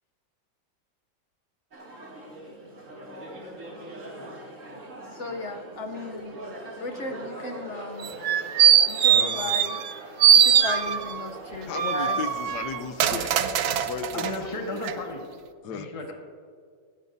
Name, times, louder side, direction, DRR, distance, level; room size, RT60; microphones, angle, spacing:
sound 1, 1.7-14.8, right 1 dB, 45° right, 2.6 m, -42 dB
voice 1, 5.1-6.3 6.8-8.1 8.8-9.8 10.3-12.2, left 2 dB, 55° left, 5 dB, 0.9 m, -35 dB
sound 2, 8.0-9.9 10.2-11.2 11.7-14.4 14.8-14.9, right 9 dB, 65° right, 1.1 m, -21 dB
voice 2, 9.0-9.3 14.1-15.2 15.7-16.2, left 2 dB, 20° left, 0 dB, 1.5 m, -34 dB
voice 3, 11.7-13.3 13.7-14.3 15.6-15.9, left 7 dB, 70° left, 10 dB, 1.3 m, -35 dB
19.0 x 14.5 x 2.7 m, 2.2 s
omnidirectional pair, 2.0 m